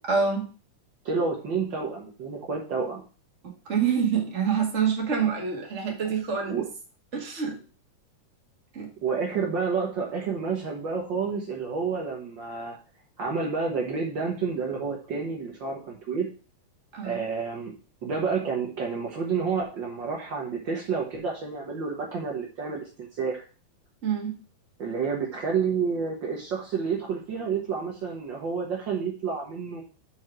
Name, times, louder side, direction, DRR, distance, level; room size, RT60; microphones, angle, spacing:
voice 1, 0.1-0.5 3.6-6.6 7.1-7.6 8.7-8.9 16.9-17.2 24.0-24.3, right 6 dB, 30° right, 0 dB, 1.3 m, -26 dB
voice 2, 1.0-3.0 6.5-6.7 9.0-12.8 13.2-16.3 17.0-17.7 18.0-23.4 24.8-29.8, right 5 dB, 75° right, -1 dB, 1.0 m, -29 dB
6.5 x 4.7 x 5.9 m, 0.37 s
omnidirectional pair, 4.0 m